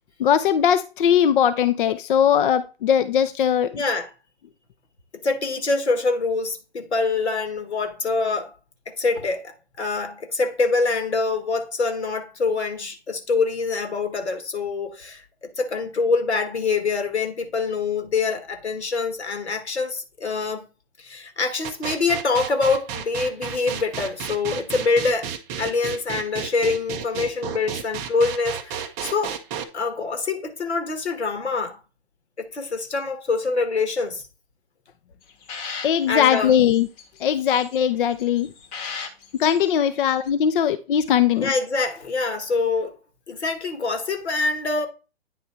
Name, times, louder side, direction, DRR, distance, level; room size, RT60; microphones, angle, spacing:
voice 1, 0.2-3.8 35.8-36.9 37.2-38.5 39.4-41.5, left 9 dB, 50° left, 0.5 m, -20 dB
voice 2, 3.7-4.1 5.1-8.5 8.8-20.6 21.0-25.3 25.6-29.4 29.7-31.8 32.4-34.2 36.1-36.6 41.4-43.0 43.3-44.9, left 4 dB, 80° left, 1.6 m, -25 dB
sound 1, 21.6-29.6, right 8 dB, 15° right, 0.4 m, -32 dB
sound 2, 35.2-37.8 38.2-39.7 40.0-40.3, left 5 dB, 25° left, 1.0 m, -37 dB
9.3 x 3.2 x 4.2 m
figure-of-eight pair, 125°, 33 cm